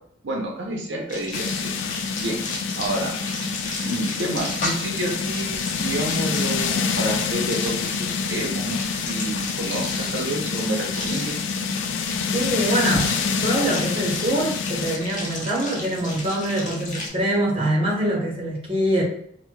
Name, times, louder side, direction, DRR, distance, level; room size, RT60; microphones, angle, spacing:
voice 1, 0.2-1.7 2.2-3.2 3.8-11.3, right 1 dB, 75° right, 0 dB, 0.6 m, -29 dB
sound 1, 1.1-17.1, left 2 dB, 45° left, 0.8 m, -34 dB
sound 2, 1.3-15.0, left 5 dB, 85° left, 0.3 m, -27 dB
voice 2, 12.3-13.1 13.4-19.0, right 1 dB, 30° right, -2 dB, 0.8 m, -24 dB
4.5 x 2.1 x 2.2 m, 0.68 s
head